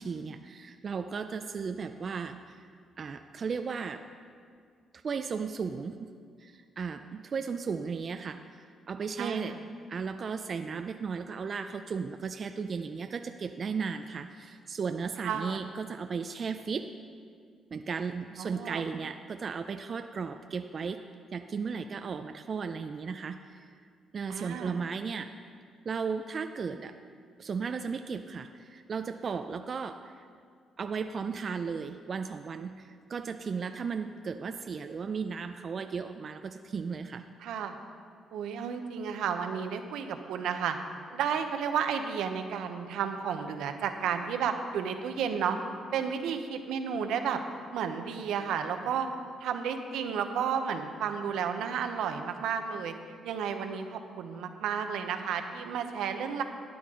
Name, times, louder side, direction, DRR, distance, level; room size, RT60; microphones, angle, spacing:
voice 1, 0.0-2.7 3.0-4.0 5.0-6.1 6.4-9.5 9.9-16.9 17.7-21.0 21.3-23.7 24.1-25.3 25.8-26.9 27.4-30.3 30.8-37.2, right 5 dB, 45° right, 7 dB, 0.4 m, -35 dB
voice 2, 9.2-9.6 15.2-15.6 18.4-18.8 24.3-24.8 37.4-37.8 38.3-40.8 41.1-45.6 45.9-47.4 47.7-49.1 49.4-52.9 53.2-56.4, right 7 dB, 85° right, 6 dB, 0.8 m, -32 dB
12.5 x 9.5 x 3.7 m, 2.1 s
cardioid pair, 90°, 0 cm